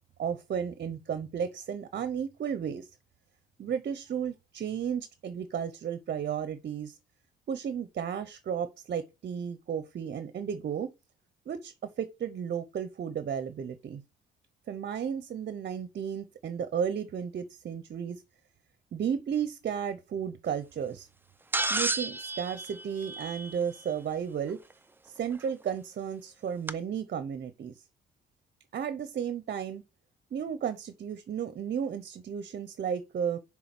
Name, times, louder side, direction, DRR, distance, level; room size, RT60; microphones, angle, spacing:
voice 1, 0.2-2.9 3.6-6.9 7.5-10.9 11.5-14.0 14.7-18.2 18.9-21.1 21.7-24.6 25.1-27.7 28.7-29.8 30.3-33.4, right 8 dB, 50° right, 0.8 m, -33 dB
sound 1, 21.5-23.8 25.4-25.5 26.7-26.8, right 2 dB, 10° right, 0.5 m, -32 dB
6.3 x 3.7 x 6.0 m
cardioid pair, 90°, 20 cm